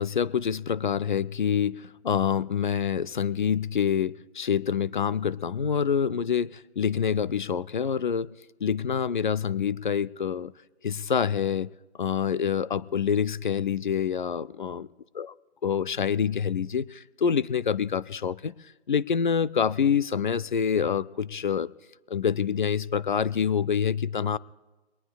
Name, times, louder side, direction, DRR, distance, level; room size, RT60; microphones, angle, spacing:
voice 1, 0.0-8.3 8.6-10.5 10.8-14.9 15.2-15.3 15.6-18.5 18.9-21.7 22.1-24.4, left 7 dB, 45° left, 19 dB, 0.4 m, -26 dB
23.5 x 18.5 x 2.3 m, 1.1 s
hypercardioid pair, 160°, 34 cm